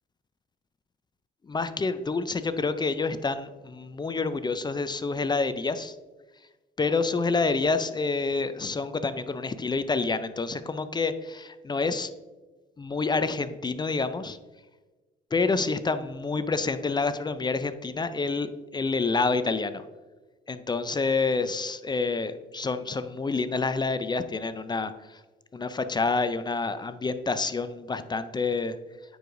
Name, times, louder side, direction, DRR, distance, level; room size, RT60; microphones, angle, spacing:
voice 1, 1.4-6.0 6.8-12.1 12.8-14.4 15.3-19.8 20.5-25.2 25.5-28.8, left 4 dB, 20° left, 12 dB, 0.4 m, -28 dB
9.6 x 4.7 x 2.6 m, 1.2 s
cardioid pair, 90°, 20 cm